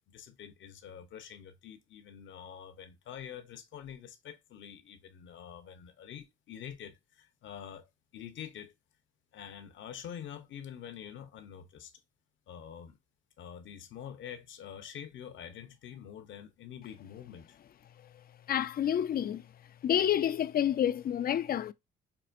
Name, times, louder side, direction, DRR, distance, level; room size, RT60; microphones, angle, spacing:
voice 1, 0.0-8.7 9.3-11.9 12.5-13.0 13.4-17.6, left 9 dB, 70° left, 1.0 m, -46 dB
voice 2, 18.5-19.4 19.8-21.7, left 10 dB, 50° left, 0.4 m, -28 dB
5.8 x 2.5 x 2.5 m
cardioid pair, 90°, 20 cm